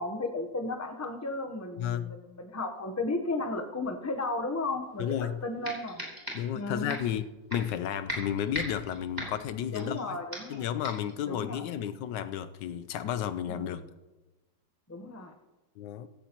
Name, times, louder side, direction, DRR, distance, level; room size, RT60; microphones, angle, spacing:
voice 1, 0.0-6.0 6.5-7.0 9.7-10.7 11.3-11.8 13.5-13.9 14.9-15.3, left 2 dB, 20° left, 6 dB, 0.4 m, -34 dB
voice 2, 1.8-2.1 5.0-5.4 6.3-7.2 7.5-10.2 10.5-13.8 15.8-16.1, left 10 dB, 75° left, 11 dB, 1.2 m, -32 dB
sound 1, 5.1-5.2 5.6-6.6 6.9-7.1 7.5-7.8 8.1-10.0 10.3-10.6 10.8-11.1, equal, 10° right, 3.4 m, -38 dB
15.5 x 14.5 x 2.9 m, 1.1 s
omnidirectional pair, 2.0 m